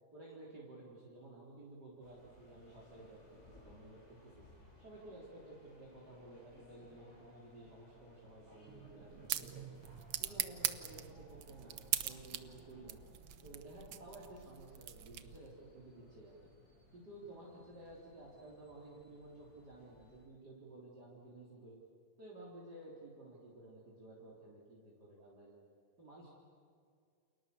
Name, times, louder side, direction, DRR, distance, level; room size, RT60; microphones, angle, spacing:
voice 1, 0.1-4.4 4.8-9.8 10.2-11.7 12.0-13.0 13.4-16.4 16.9-21.8 22.2-25.7 26.0-26.4, right 2 dB, 45° right, -6 dB, 4.4 m, -54 dB
sound 1, 2.0-20.3, left 1 dB, 30° left, 6.5 m, -63 dB
sound 2, 8.7-15.6, right 11 dB, 75° right, 1.9 m, -42 dB
29.5 x 28.5 x 7.0 m, 2.2 s
omnidirectional pair, 2.4 m